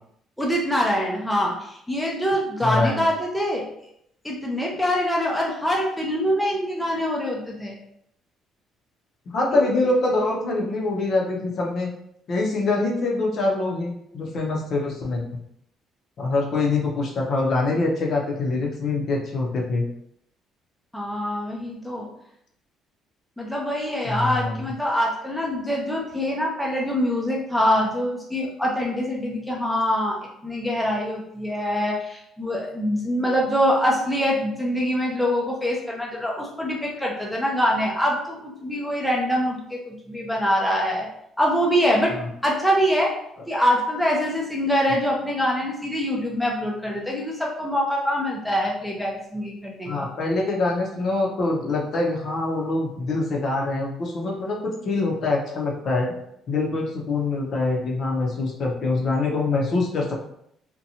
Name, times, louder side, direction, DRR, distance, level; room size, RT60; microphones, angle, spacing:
voice 1, 0.4-3.6 4.2-7.8 9.5-9.7 20.9-22.1 23.4-41.1 41.4-42.2 42.4-43.1 43.5-50.1, equal, 5° left, -3 dB, 0.4 m, -24 dB
voice 2, 2.6-3.0 9.3-11.9 12.3-15.2 16.2-19.8 24.0-24.6 49.9-56.1 56.5-60.1, left 3 dB, 45° left, -1 dB, 0.6 m, -24 dB
2.7 x 2.2 x 2.7 m, 0.73 s
cardioid pair, 140°, 0 cm